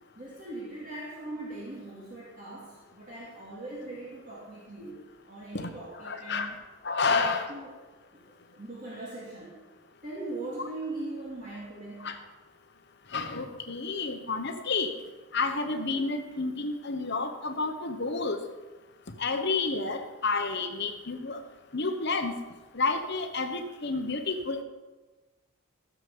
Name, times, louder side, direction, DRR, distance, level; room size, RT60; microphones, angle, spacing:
voice 1, 0.2-5.0 5.3-6.6 7.0-7.7 8.5-9.6 10.0-12.2, right 2 dB, 35° right, -6 dB, 2.4 m, -40 dB
voice 2, 6.0-6.5 6.8-7.4 12.0-12.1 13.1-14.9 15.3-18.4 19.2-21.4 21.7-22.4 22.7-24.6, left 3 dB, 50° left, 6 dB, 1.2 m, -30 dB
15.0 x 7.5 x 5.5 m, 1.2 s
head